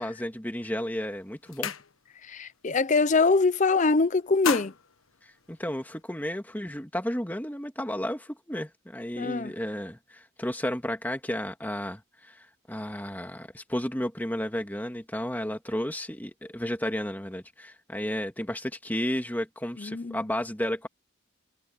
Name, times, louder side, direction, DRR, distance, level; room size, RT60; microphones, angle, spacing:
voice 1, 0.0-1.7 5.5-20.9, equal, 10° left, 2.4 m, -33 dB
sound 1, 0.6-0.8 1.2-2.3 2.7-2.9 3.2-3.8 4.1-6.0, left 7 dB, 85° left, 1.4 m, -35 dB
voice 2, 2.2-4.7 9.2-9.5 19.8-20.2, left 3 dB, 35° left, 0.6 m, -24 dB
head